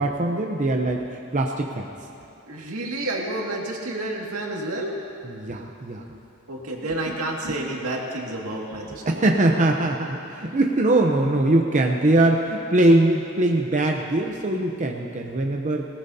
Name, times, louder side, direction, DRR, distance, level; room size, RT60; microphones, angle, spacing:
voice 1, 0.0-1.9 5.2-6.2 6.8-7.0 7.4-7.5 8.9-15.9, right 1 dB, 35° right, 2 dB, 0.7 m, -22 dB
voice 2, 2.5-4.9 6.5-9.4 10.4-10.5, right 1 dB, 80° right, -1 dB, 2.1 m, -30 dB
20.0 x 18.5 x 2.8 m, 2.9 s
head